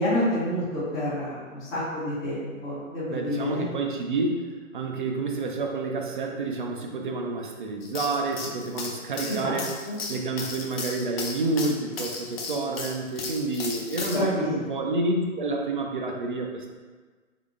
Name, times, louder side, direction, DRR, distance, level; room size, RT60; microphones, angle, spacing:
voice 1, 0.0-3.7 9.2-9.9 14.0-14.8, left 1 dB, 10° left, -13 dB, 0.6 m, -29 dB
voice 2, 3.1-9.7 10.1-16.7, right 2 dB, 40° right, 2 dB, 0.5 m, -29 dB
sound 1, 7.8-14.2, left 4 dB, 45° left, 0.7 m, -35 dB
3.8 x 3.1 x 3.5 m, 1.4 s
figure-of-eight pair, 135°, 42 cm